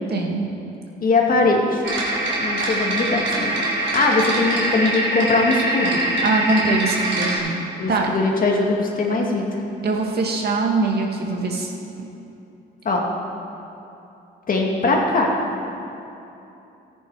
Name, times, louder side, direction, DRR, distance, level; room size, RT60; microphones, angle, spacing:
voice 1, 0.1-0.5 6.2-7.6 7.9-8.1 9.8-12.1, right 3 dB, 55° right, 0 dB, 1.9 m, -22 dB
voice 2, 1.0-1.8 2.4-6.0 7.8-9.5 12.8-13.0 14.5-15.3, left 3 dB, 45° left, 0 dB, 2.1 m, -21 dB
sound 1, 1.8-7.4, right 1 dB, 70° right, 3.4 m, -23 dB
14.0 x 10.0 x 4.8 m, 2.9 s
cardioid pair, 90°, 20 cm